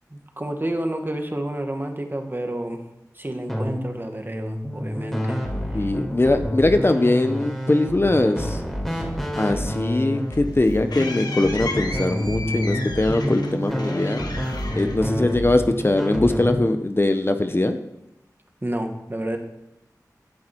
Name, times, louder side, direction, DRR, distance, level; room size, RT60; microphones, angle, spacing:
voice 1, 0.1-2.8 3.1-5.9 15.0-15.3 18.6-19.4, right 1 dB, 30° right, 4 dB, 2.0 m, -30 dB
sound 1, 3.5-16.6, equal, 5° left, 4.2 m, -28 dB
voice 2, 5.7-8.6 9.4-14.2 14.8-17.8, left 2 dB, 35° left, 8 dB, 1.0 m, -21 dB
sound 2, 9.9-15.7, left 3 dB, 85° left, 1.5 m, -35 dB
17.5 x 10.5 x 4.7 m, 0.87 s
wide cardioid pair, 45°, 7 cm